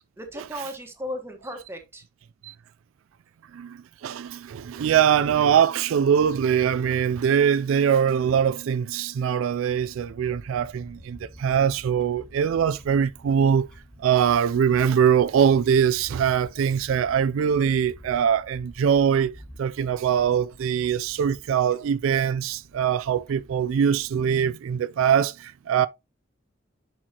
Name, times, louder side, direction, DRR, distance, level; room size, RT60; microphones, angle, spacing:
voice 1, 0.2-2.0 4.2-4.4, equal, 10° right, 1.3 m, -36 dB
voice 2, 3.5-13.7 14.0-19.3 19.6-25.9, right 8 dB, 75° right, 0.3 m, -22 dB
Fowl / Bird, 9.7-24.3, equal, 5° left, 1.7 m, -49 dB
10.0 x 4.6 x 2.9 m
head